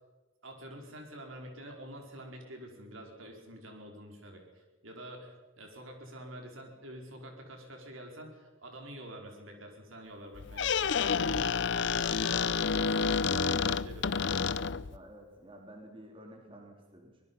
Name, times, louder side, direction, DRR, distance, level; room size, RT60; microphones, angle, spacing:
voice 1, 0.4-14.3, equal, 75° right, 2 dB, 4.7 m, -47 dB
Squeak, 10.3-15.0, left 5 dB, 55° left, 0.6 m, -29 dB
voice 2, 14.9-17.2, equal, 25° right, 1 dB, 3.5 m, -51 dB
24.5 x 20.5 x 5.6 m, 1.2 s
head